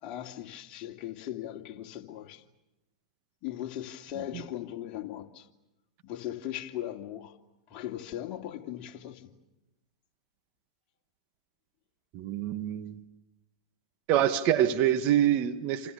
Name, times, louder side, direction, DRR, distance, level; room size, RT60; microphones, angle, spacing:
voice 1, 0.0-2.4 3.4-5.4 6.0-7.3 7.7-9.3, left 12 dB, 40° left, 2.9 m, -38 dB
voice 2, 12.1-13.0 14.1-15.9, right 11 dB, 45° right, 1.8 m, -26 dB
29.0 x 28.5 x 6.9 m
hypercardioid pair, 115°, 4 cm